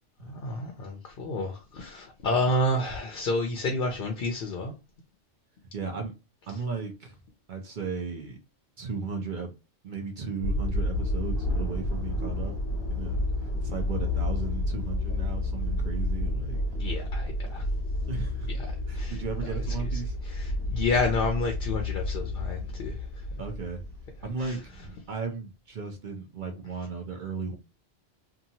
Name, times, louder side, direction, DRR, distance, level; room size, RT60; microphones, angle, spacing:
voice 1, 0.2-4.7 6.5-6.6 16.8-17.7 18.5-23.4 24.4-24.6, left 2 dB, 55° left, 0.7 m, -30 dB
voice 2, 5.7-6.1 6.5-7.2 7.5-8.4 8.8-9.5 9.8-12.5 12.9-13.2 13.4-16.6 18.1-18.5 18.9-20.1 23.4-23.8 24.2-24.7 25.1-27.6, right 5 dB, 55° right, 0.6 m, -35 dB
sound 1, 10.4-24.6, left 1 dB, 85° left, 1.0 m, -30 dB
sound 2, 10.9-25.0, right 2 dB, 20° right, 1.3 m, -47 dB
2.8 x 2.3 x 2.7 m
omnidirectional pair, 1.2 m